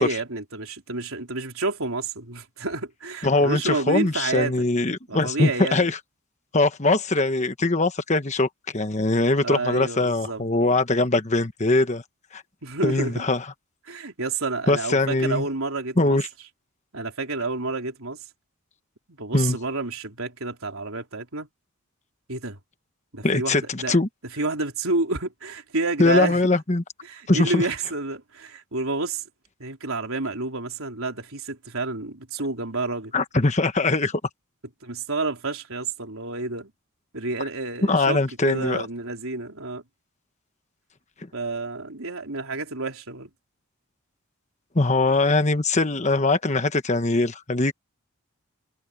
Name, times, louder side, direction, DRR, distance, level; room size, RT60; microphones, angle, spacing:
voice 1, 0.0-4.6 5.1-5.9 9.4-10.4 12.6-13.2 13.9-16.2 16.9-18.2 19.1-21.5 22.3-22.6 23.1-24.0 24.3-26.4 27.0-29.2 29.6-33.1 34.8-36.7 37.1-39.8 41.3-43.3, right 3 dB, 70° right, 3.8 m, -29 dB
voice 2, 3.2-6.0 6.5-12.0 12.3-12.4 12.8-13.4 14.7-15.4 16.0-16.3 19.3-19.6 23.2-24.1 26.0-26.8 27.3-27.6 33.1-34.2 37.9-38.9 44.7-47.7, left 2 dB, 30° left, 1.2 m, -22 dB
head